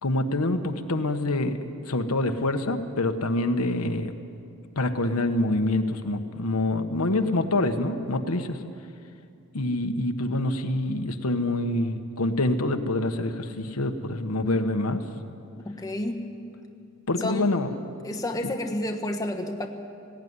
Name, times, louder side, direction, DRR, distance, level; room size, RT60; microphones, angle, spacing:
voice 1, 0.0-1.6 1.9-4.1 4.8-8.6 9.5-15.0 17.1-17.7, left 2 dB, 85° left, 6 dB, 1.2 m, -26 dB
voice 2, 15.6-16.3 17.2-17.5 18.0-19.7, left 1 dB, 15° left, 3 dB, 1.2 m, -30 dB
18.0 x 17.0 x 9.6 m, 2.5 s
head